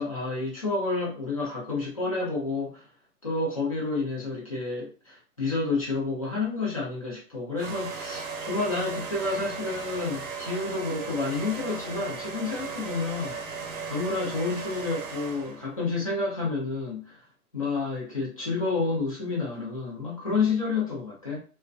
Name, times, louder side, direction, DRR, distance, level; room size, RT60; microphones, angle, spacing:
voice 1, 0.0-2.8 3.2-13.4 13.9-17.2 17.5-21.4, left 3 dB, 25° left, -5 dB, 0.5 m, -29 dB
sound 1, 7.6-15.7, right 5 dB, 60° right, 0.8 m, -36 dB
2.4 x 2.1 x 2.4 m, 0.36 s
hypercardioid pair, 165°, 46 cm